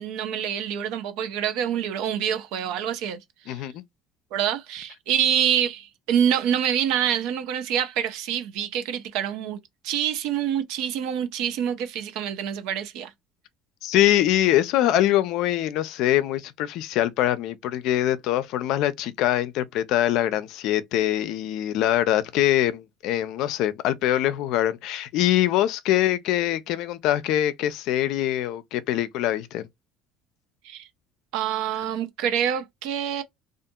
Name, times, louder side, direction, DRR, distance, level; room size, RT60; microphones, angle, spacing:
voice 1, 0.0-3.2 3.5-3.6 4.3-13.1 30.6-30.9 31.3-33.2, right 9 dB, 75° right, 0.6 m, -26 dB
voice 2, 3.5-3.8 13.8-29.7, left 13 dB, 70° left, 0.4 m, -23 dB
2.7 x 2.4 x 2.2 m
supercardioid pair, 100°, 0 cm